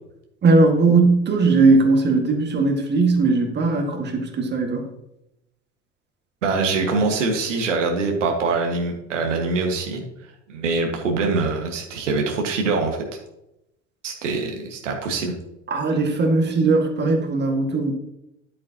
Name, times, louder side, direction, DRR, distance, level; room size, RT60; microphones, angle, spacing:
voice 1, 0.4-4.8 15.7-17.9, right 3 dB, 25° right, 3 dB, 2.0 m, -19 dB
voice 2, 6.4-10.0 10.5-13.0 14.0-15.4, right 3 dB, 70° right, 2 dB, 1.8 m, -23 dB
10.5 x 8.4 x 2.9 m, 0.85 s
figure-of-eight pair, 70°, 38 cm